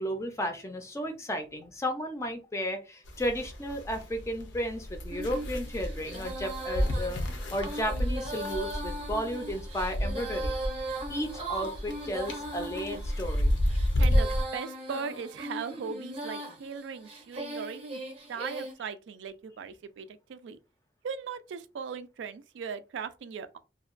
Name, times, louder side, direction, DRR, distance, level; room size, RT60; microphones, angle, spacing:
voice 1, 0.0-7.2 7.5-10.6 11.1-13.5, equal, 15° left, 0.4 m, -33 dB
sound 1, 3.1-14.4, equal, 85° left, 0.6 m, -31 dB
Female singing, 5.1-18.7, right 2 dB, 30° right, 0.6 m, -39 dB
voice 2, 14.0-18.0 18.3-20.6 21.0-23.6, right 6 dB, 80° right, 0.3 m, -38 dB
2.7 x 2.2 x 2.4 m
head